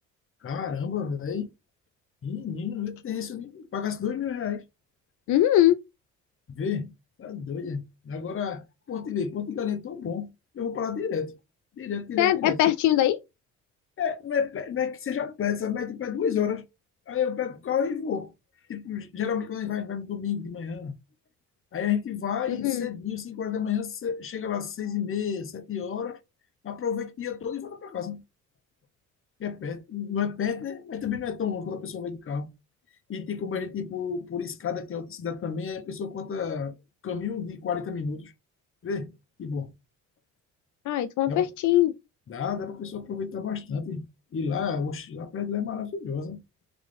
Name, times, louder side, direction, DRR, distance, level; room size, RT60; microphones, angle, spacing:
voice 1, 0.4-1.5 2.2-4.6 6.5-6.9 7.2-11.4 11.8-12.6 14.0-16.7 17.1-18.3 18.7-21.0 21.7-26.2 26.6-28.2 29.4-32.5 33.1-36.7 37.0-38.3 38.8-39.1 39.4-39.7 41.3-41.5 42.3-44.0 44.3-46.4, left 7 dB, 45° left, 0.9 m, -31 dB
voice 2, 5.3-5.8 12.2-13.2 22.5-22.9 40.9-41.9, left 13 dB, 75° left, 0.5 m, -21 dB
3.9 x 3.7 x 3.4 m
cardioid pair, 90°, 30 cm